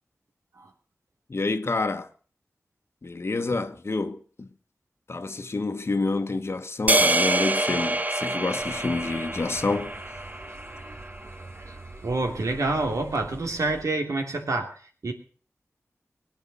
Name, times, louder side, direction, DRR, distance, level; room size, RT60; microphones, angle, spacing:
voice 1, 1.3-2.1 3.0-4.5 5.1-10.0, left 3 dB, 55° left, 1.3 m, -28 dB
sound 1, 6.9-11.2, right 1 dB, 30° right, 1.0 m, -26 dB
sound 2, 8.6-13.8, right 2 dB, 60° right, 2.9 m, -45 dB
voice 2, 12.0-14.7 15.0-15.1, right 2 dB, 80° right, 2.9 m, -27 dB
21.0 x 8.8 x 6.8 m
wide cardioid pair, 75°, 5 cm